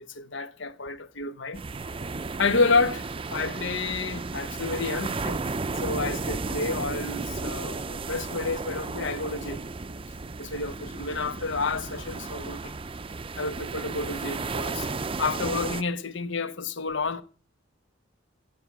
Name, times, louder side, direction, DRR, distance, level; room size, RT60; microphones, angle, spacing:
voice 1, 0.1-1.6 2.4-5.4 5.8-9.6 10.4-12.7 13.4-14.9 15.2-17.2, left 3 dB, 65° left, 1.1 m, -29 dB
sound 1, 1.5-15.8, right 3 dB, 30° right, 0.6 m, -34 dB
16.0 x 8.9 x 6.0 m
head